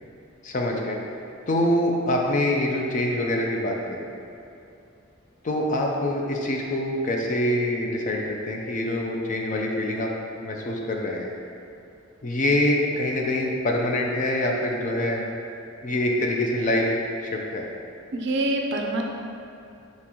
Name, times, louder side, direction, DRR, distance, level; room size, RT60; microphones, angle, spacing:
voice 1, 0.4-1.0 1.5-4.1 5.4-10.1 10.4-11.3 12.2-15.2 15.8-16.9 17.2-17.7, left 1 dB, 40° left, 0 dB, 0.4 m, -25 dB
voice 2, 18.1-19.0, right 1 dB, 55° right, 1 dB, 0.4 m, -25 dB
4.1 x 3.7 x 2.9 m, 2.6 s
head